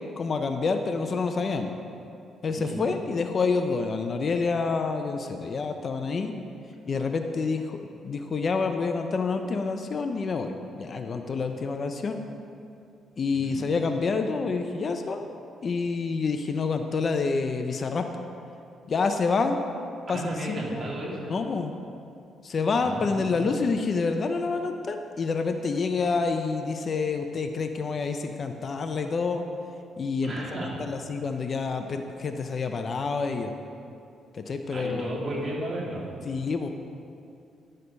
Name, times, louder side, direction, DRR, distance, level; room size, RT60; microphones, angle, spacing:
voice 1, 0.2-1.7 2.4-6.3 6.9-12.2 13.2-15.2 15.6-18.1 18.9-19.6 20.1-20.8 21.3-21.7 22.4-29.4 30.0-30.3 30.8-33.5 34.3-35.2 36.2-36.7, left 4 dB, 45° left, 6 dB, 0.6 m, -28 dB
voice 2, 20.1-21.3 22.8-23.4 30.2-30.8 34.7-36.2, right 1 dB, 35° right, -4 dB, 2.7 m, -34 dB
11.0 x 6.6 x 5.3 m, 2.5 s
cardioid pair, 90°, 0 cm